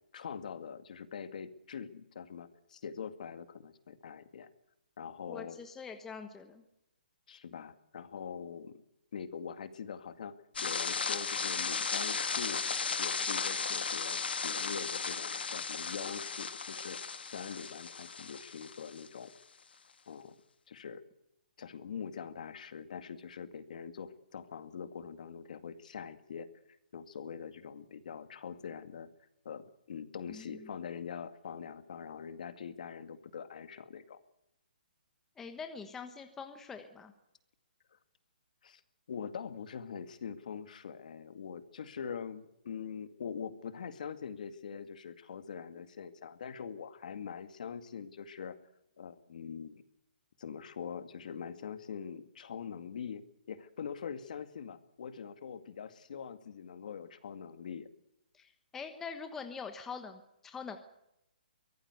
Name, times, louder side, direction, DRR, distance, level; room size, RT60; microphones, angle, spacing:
voice 1, 0.1-4.5 5.0-5.6 7.3-8.8 9.1-10.4 10.6-12.6 13.0-19.3 20.1-20.4 20.7-21.0 21.6-26.5 26.9-29.1 29.4-34.2 38.6-38.8 39.1-48.6 49.0-49.8 50.4-57.9, left 7 dB, 50° left, 11 dB, 2.1 m, -43 dB
voice 2, 5.3-6.6 30.3-30.7 35.4-37.1 58.3-60.8, left 5 dB, 5° left, 7 dB, 1.2 m, -44 dB
sound 1, 10.6-19.1, left 5 dB, 85° left, 2.4 m, -35 dB
24.0 x 17.5 x 8.1 m, 0.82 s
hypercardioid pair, 170°, 5 cm